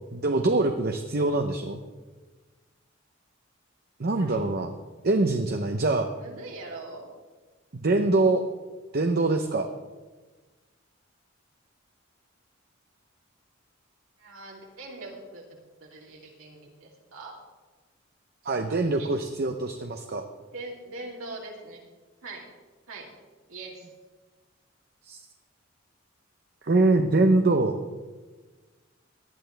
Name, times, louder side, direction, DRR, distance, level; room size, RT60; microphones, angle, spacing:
voice 1, 0.1-1.8 4.0-4.7 5.0-6.1 7.7-8.4 8.9-9.7 18.4-20.2 25.1-25.2 26.6-27.8, right 2 dB, 50° right, 5 dB, 0.7 m, -24 dB
voice 2, 6.1-7.1 14.2-15.5 15.8-17.3 18.7-19.3 20.5-21.8 22.2-22.4 22.9-23.1 23.5-23.9, right 2 dB, 90° right, -2 dB, 3.2 m, -42 dB
18.5 x 11.5 x 3.4 m, 1.3 s
head